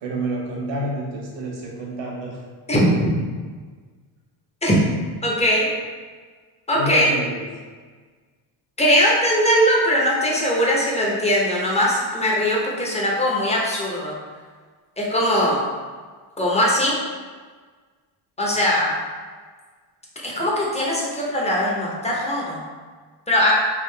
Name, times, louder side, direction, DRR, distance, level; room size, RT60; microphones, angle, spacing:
voice 1, 0.0-2.4 6.7-7.5, right 1 dB, 65° right, -3 dB, 1.1 m, -28 dB
voice 2, 2.7-3.2 4.6-4.8 5.2-5.7 6.7-7.1 8.8-14.1 15.0-15.6 16.4-17.0 18.4-18.9 20.2-22.6 23.3-23.5, equal, 15° left, -4 dB, 0.9 m, -20 dB
3.6 x 2.5 x 3.3 m, 1.5 s
cardioid pair, 100°, 49 cm